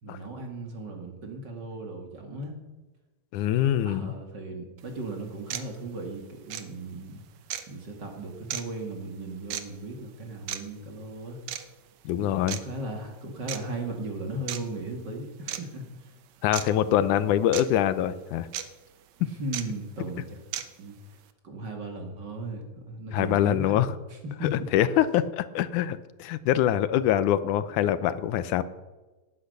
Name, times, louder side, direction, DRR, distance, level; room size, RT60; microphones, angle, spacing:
voice 1, 0.0-2.5 3.8-7.2 7.7-11.4 12.2-16.1 16.6-17.0 19.2-20.4 20.8-21.0 21.4-23.8 24.1-24.7, right 2 dB, 40° right, 3 dB, 2.5 m, -37 dB
voice 2, 3.3-4.1 12.1-12.6 16.4-18.5 23.1-23.9 24.4-28.6, left 11 dB, 85° left, 14 dB, 2.3 m, -24 dB
sound 1, 4.8-4.9 5.5-5.7 6.5-6.6 7.5-7.7 8.5-8.6 9.5-9.6 10.5-10.6 11.5-11.7 12.5-12.6 13.5-13.6 14.5-14.6 15.5-15.6 16.5-16.7 17.5-17.6 18.5-18.6 19.5-19.6 20.5-20.6, right 11 dB, 70° right, 2.1 m, -33 dB
18.0 x 10.5 x 6.7 m, 1.2 s
omnidirectional pair, 3.4 m